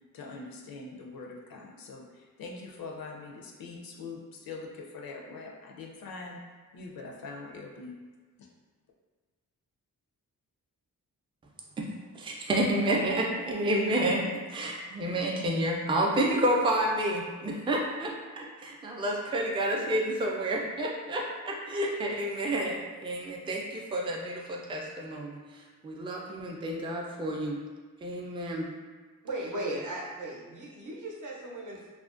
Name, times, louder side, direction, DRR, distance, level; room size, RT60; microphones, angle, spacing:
voice 1, 0.1-6.4 6.7-7.9 8.4-8.5, left 3 dB, 75° left, 0 dB, 0.5 m, -43 dB
voice 2, 12.1-27.6 28.0-28.7, right 1 dB, 15° right, -2 dB, 0.3 m, -30 dB
voice 3, 29.2-31.9, right 1 dB, 60° right, -2 dB, 0.6 m, -37 dB
2.4 x 2.1 x 2.4 m, 1.4 s
cardioid pair, 60°, 36 cm